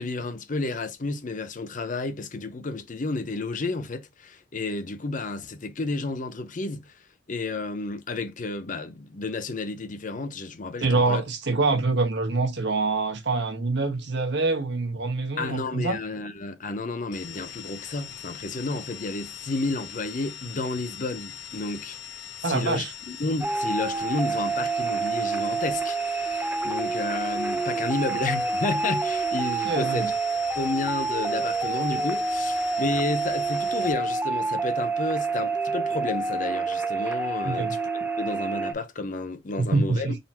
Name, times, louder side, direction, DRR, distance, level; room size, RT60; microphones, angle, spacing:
voice 1, 0.0-7.0 7.3-11.2 15.4-22.0 22.5-30.1 30.6-40.1, left 3 dB, 45° left, 0.7 m, -31 dB
voice 2, 10.8-16.0 22.4-22.9 29.6-30.1 37.4-37.7 39.6-40.2, right 3 dB, 65° right, 1.3 m, -25 dB
sound 1, 17.1-33.9, left 9 dB, 65° left, 1.0 m, -41 dB
sound 2, 23.4-38.7, right 4 dB, 10° right, 0.7 m, -28 dB
4.0 x 2.5 x 4.2 m
head